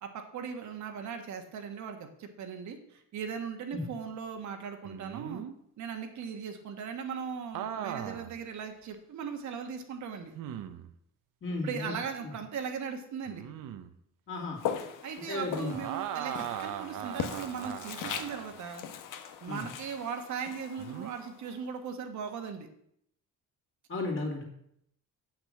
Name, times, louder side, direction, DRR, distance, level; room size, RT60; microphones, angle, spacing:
voice 1, 0.0-5.4 5.8-10.3 11.6-13.4 15.0-18.8 19.4-22.7, right 6 dB, 60° right, 5 dB, 1.3 m, -38 dB
sound 1, 4.8-5.5 7.5-8.3 8.9-9.0 10.3-10.9 13.3-13.9 15.7-18.6 20.8-21.1, right 10 dB, 75° right, 0.9 m, -39 dB
voice 2, 11.4-11.9 12.2-12.3 14.3-14.6 15.3-15.7 19.5-19.6 23.9-24.5, left 2 dB, 40° left, 0 dB, 2.6 m, -34 dB
Walk footsteps, 14.6-21.7, left 8 dB, 75° left, 1.1 m, -40 dB
8.2 x 6.1 x 7.8 m, 0.72 s
cardioid pair, 170°, 33 cm